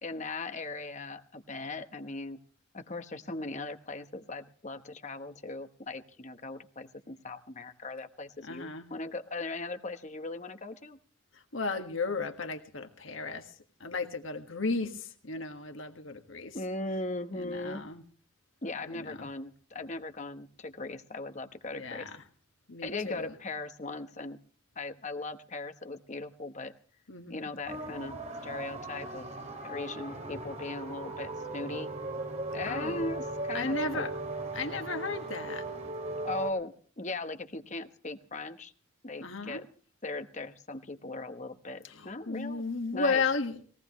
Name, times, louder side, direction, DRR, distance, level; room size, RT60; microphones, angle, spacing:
voice 1, 0.0-2.4 2.7-11.0 16.5-17.8 18.6-22.1 22.8-24.4 24.8-26.7 27.3-29.3 29.6-31.9 32.5-34.1 36.2-38.7 39.0-39.7 40.0-42.6 42.9-43.2, left 2 dB, 35° left, 8 dB, 1.1 m, -38 dB
voice 2, 8.4-8.9 11.5-13.4 13.8-16.6 17.4-18.0 18.8-19.3 21.7-22.2 22.7-23.3 27.1-27.5 32.5-33.0 33.5-34.1 34.5-35.6 39.2-39.6 41.8-43.6, left 4 dB, 75° left, 6 dB, 1.7 m, -34 dB
sound 1, 27.7-36.5, right 2 dB, 35° right, 2.7 m, -38 dB
20.5 x 18.0 x 3.1 m, 0.43 s
head